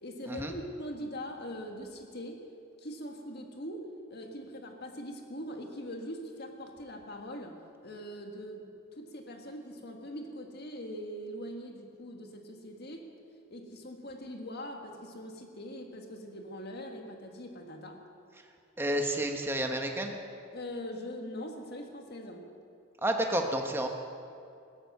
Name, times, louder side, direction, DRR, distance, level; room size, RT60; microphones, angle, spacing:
voice 1, 0.0-2.5 2.8-13.1 13.5-18.0 20.5-22.5, equal, 50° left, 3 dB, 1.8 m, -42 dB
voice 2, 18.8-20.2 23.0-23.9, right 1 dB, 10° right, 3 dB, 1.2 m, -30 dB
16.0 x 13.0 x 6.7 m, 2.5 s
head